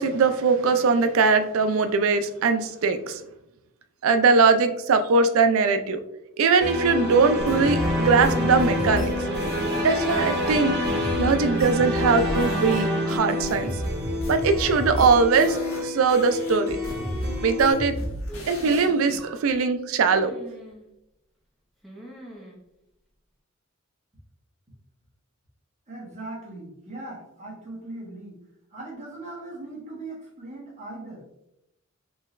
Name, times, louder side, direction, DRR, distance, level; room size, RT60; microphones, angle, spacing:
voice 1, 0.0-3.2 4.0-6.0 6.4-9.1 9.8-10.8 11.2-13.7 14.3-16.8 17.4-17.9 18.5-20.3, right 4 dB, 70° right, 9 dB, 0.4 m, -21 dB
sound 1, 6.6-17.7, left 1 dB, 55° right, 0.8 m, -27 dB
sound 2, 7.4-12.8 13.1-15.8 16.1-19.2, equal, 85° left, 1.2 m, -33 dB
sound 3, 9.2-9.9 11.2-12.1 12.7-13.4 14.7-15.2 15.5-15.6 16.5-17.2 18.3-19.0 20.1-20.8 21.8-22.6, right 1 dB, ahead, 0.6 m, -41 dB
voice 2, 25.9-28.4 28.7-31.2, right 2 dB, 35° right, -4 dB, 1.2 m, -39 dB
3.8 x 3.1 x 2.5 m, 0.85 s
head